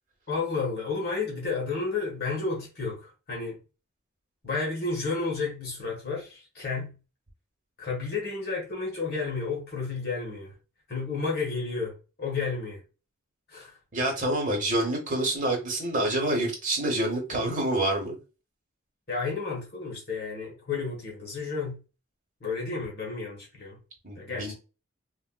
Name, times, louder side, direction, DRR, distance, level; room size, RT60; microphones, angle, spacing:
voice 1, 0.3-3.6 4.4-6.9 7.8-10.5 10.9-11.9 12.2-12.8 13.5-13.8 19.1-21.8 22.4-23.8 24.2-24.5, left 4 dB, 50° left, 1.2 m, -31 dB
voice 2, 13.9-18.1 24.0-24.5, right 1 dB, 35° right, 1.1 m, -27 dB
3.4 x 2.4 x 2.2 m
head